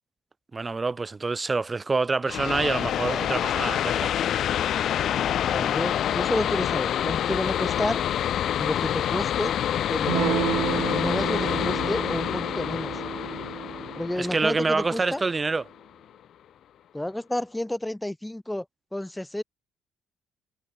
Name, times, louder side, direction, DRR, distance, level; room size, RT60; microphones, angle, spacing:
voice 1, 0.5-4.1 14.2-15.6, right 3 dB, 20° right, 0.5 m, -26 dB
sound 1, 2.2-15.6, left 10 dB, 60° left, 0.8 m, -27 dB
voice 2, 5.5-8.0 8.6-9.5 9.9-10.5 10.8-12.9 14.0-15.2 16.9-18.6 18.9-19.4, left 1 dB, 5° left, 0.9 m, -30 dB
Electric guitar / Strum, 10.1-15.2, right 13 dB, 75° right, 0.4 m, -32 dB
cardioid pair, 115°, 0 cm